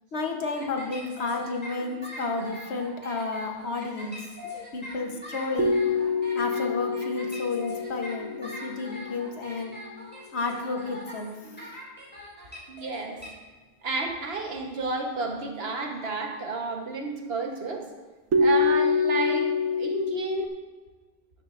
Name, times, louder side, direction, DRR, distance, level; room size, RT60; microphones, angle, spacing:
voice 1, 0.1-4.2 4.7-5.8 6.3-9.8 10.3-11.5, left 3 dB, 65° left, 3 dB, 1.3 m, -31 dB
sound 1, 0.5-13.3, left 1 dB, 10° left, 2.1 m, -42 dB
sound 2, 5.6-9.7 18.3-20.5, left 4 dB, 80° right, 1.5 m, -26 dB
voice 2, 12.7-13.2 13.8-17.9 18.4-19.5 19.8-20.5, right 4 dB, 60° right, 2 dB, 1.3 m, -31 dB
12.0 x 9.8 x 2.5 m, 1.3 s
omnidirectional pair, 1.2 m